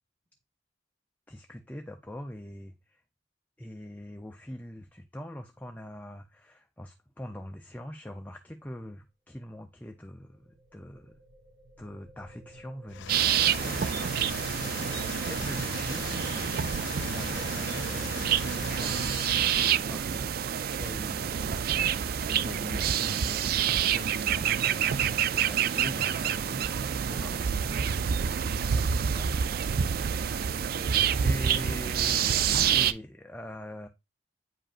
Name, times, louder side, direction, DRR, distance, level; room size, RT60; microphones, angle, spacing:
voice 1, 1.3-3.0 3.6-11.2 11.8-13.9 15.3-19.2 19.9-20.4 20.8-26.8 27.1-29.3 31.2-33.9, equal, 10° left, 0.5 m, -43 dB
sound 1, 9.9-22.1, right 2 dB, 70° right, 2.4 m, -53 dB
sound 2, 12.9-19.8, left 8 dB, 70° left, 0.3 m, -39 dB
sound 3, 13.1-32.9, right 8 dB, 50° right, 0.3 m, -28 dB
voice 2, 14.1-14.4 19.5-20.1 29.6-31.4, equal, 35° right, 1.4 m, -48 dB
8.6 x 5.2 x 2.5 m
head